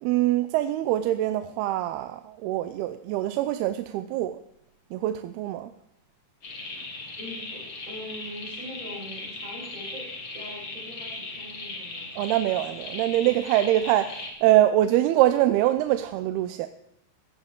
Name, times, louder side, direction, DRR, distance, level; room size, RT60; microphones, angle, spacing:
voice 1, 0.0-4.4 4.9-5.7 12.2-16.7, right 13 dB, 85° right, 10 dB, 2.6 m, -24 dB
sound 1, 6.4-14.3, left 2 dB, 35° left, 2.7 m, -38 dB
voice 2, 7.2-10.1 10.3-12.1, equal, 20° right, -4 dB, 7.2 m, -42 dB
17.0 x 15.0 x 3.7 m, 0.80 s
omnidirectional pair, 4.5 m